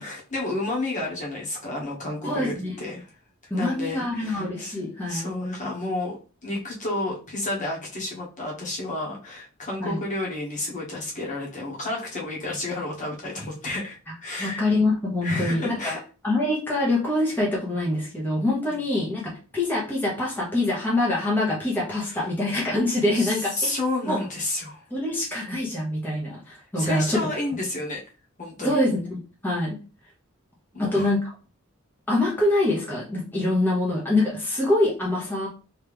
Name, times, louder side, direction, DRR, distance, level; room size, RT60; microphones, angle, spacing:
voice 1, 0.0-3.1 3.5-4.8 5.1-14.6 15.2-16.0 22.1-22.3 23.1-24.8 26.8-28.0 28.4-28.8 30.7-31.1, left 2 dB, 40° left, -3 dB, 1.3 m, -31 dB
voice 2, 2.2-2.7 3.5-5.3 9.8-10.0 14.4-23.7 24.0-24.2 24.9-27.3 28.6-29.8 30.8-31.2 32.1-35.5, left 1 dB, 10° left, -5 dB, 1.0 m, -25 dB
3.2 x 3.1 x 3.4 m, 0.36 s
head